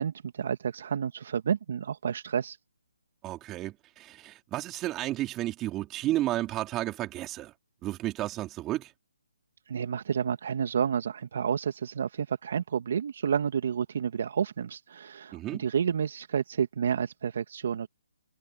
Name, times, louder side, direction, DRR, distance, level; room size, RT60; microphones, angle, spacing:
voice 1, 0.0-2.6 9.7-17.9, right 7 dB, 55° right, 1.7 m, -30 dB
voice 2, 3.2-7.5 7.8-8.9 15.3-15.6, right 15 dB, 15° right, 4.1 m, -32 dB
hypercardioid pair, 150°, 0 cm